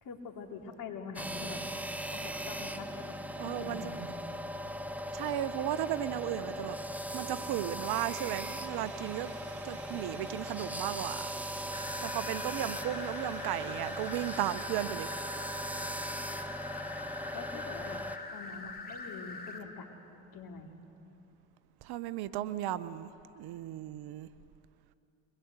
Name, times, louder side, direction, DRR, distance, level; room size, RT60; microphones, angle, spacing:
voice 1, 0.0-1.6 2.1-4.1 17.3-18.0 18.3-20.0 20.3-20.7, left 4 dB, 50° left, 2 dB, 3.0 m, -45 dB
sound 1, 1.2-18.2, equal, 5° right, 1.0 m, -39 dB
voice 2, 3.4-4.0 5.1-6.8 7.1-9.3 9.6-11.3 12.0-15.1 21.8-23.1 23.4-24.3, right 13 dB, 60° right, 15 dB, 0.9 m, -35 dB
sound 2, 7.9-14.8, right 5 dB, 80° right, 6.3 m, -53 dB
sound 3, 11.7-19.6, left 3 dB, 20° left, 2.9 m, -43 dB
22.5 x 20.5 x 8.1 m, 2.8 s
hypercardioid pair, 70°, 43 cm